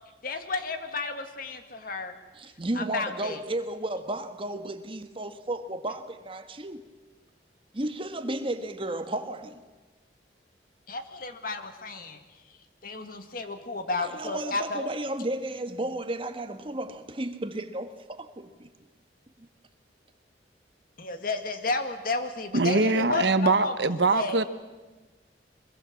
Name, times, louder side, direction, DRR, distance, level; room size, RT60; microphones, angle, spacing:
voice 1, 0.2-2.1 2.8-3.4 10.9-12.2 12.8-14.9 21.0-23.7 24.1-24.4, left 3 dB, 55° left, 1.9 m, -32 dB
voice 2, 2.6-6.8 7.7-9.6 14.0-18.7, right 1 dB, 30° right, 1.4 m, -33 dB
voice 3, 22.5-24.4, right 3 dB, 75° right, 1.2 m, -23 dB
24.0 x 21.5 x 7.5 m
head